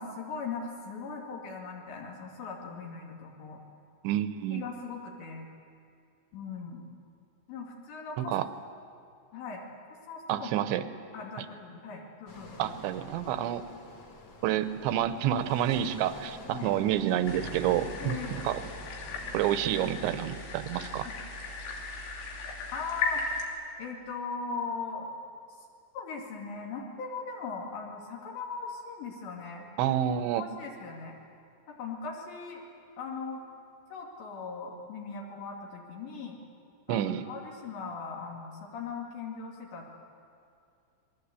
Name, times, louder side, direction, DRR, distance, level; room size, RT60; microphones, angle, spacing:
voice 1, 0.0-3.6 4.5-5.5 6.3-6.8 7.5-8.3 9.3-9.6 10.1-10.6 11.1-12.8 16.5-16.7 18.0-18.5 21.0-21.1 22.7-23.2 23.8-25.2 25.9-29.7 30.4-31.2 31.7-32.6 33.0-33.4 33.9-36.4 36.9-39.9, left 4 dB, 65° left, -1 dB, 4.3 m, -39 dB
voice 2, 4.0-4.7 8.2-8.5 10.3-10.8 11.4-11.5 12.6-13.6 14.4-18.6 19.3-21.1 29.8-30.5 36.9-37.2, right 11 dB, 75° right, 11 dB, 3.0 m, -29 dB
sound 1, 12.3-21.8, left 2 dB, 45° left, 1.4 m, -48 dB
sound 2, 17.3-23.5, left 3 dB, 85° left, 5.5 m, -37 dB
27.5 x 21.5 x 8.4 m, 2.5 s
omnidirectional pair, 5.5 m